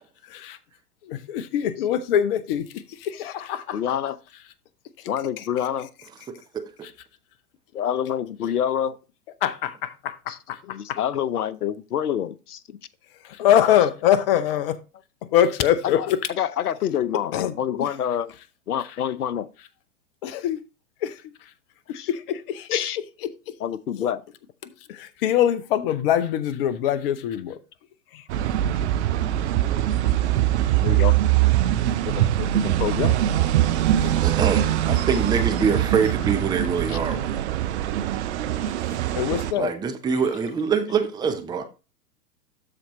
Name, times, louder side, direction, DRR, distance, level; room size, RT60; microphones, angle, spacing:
voice 1, 1.1-2.7 3.0-3.8 9.4-11.0 13.4-14.8 15.3-16.2 17.3-17.5 20.2-20.6 21.0-21.1 22.1-22.8 24.9-27.6 34.0-34.1 39.2-39.7, left 10 dB, 35° left, 0.7 m, -23 dB
voice 2, 3.7-4.2 5.1-5.9 7.7-8.9 10.3-12.8 15.8-18.3 18.7-19.5 21.9-22.1 22.7-23.0 23.6-24.2 30.8-31.2 32.0-33.2 36.9-37.0, left 9 dB, 70° left, 0.7 m, -27 dB
sound 1, 28.3-39.5, right 13 dB, 45° right, 0.7 m, -22 dB
voice 3, 34.2-37.5 39.5-41.6, right 6 dB, 10° right, 0.7 m, -24 dB
13.0 x 4.3 x 3.0 m
figure-of-eight pair, 105°, 47 cm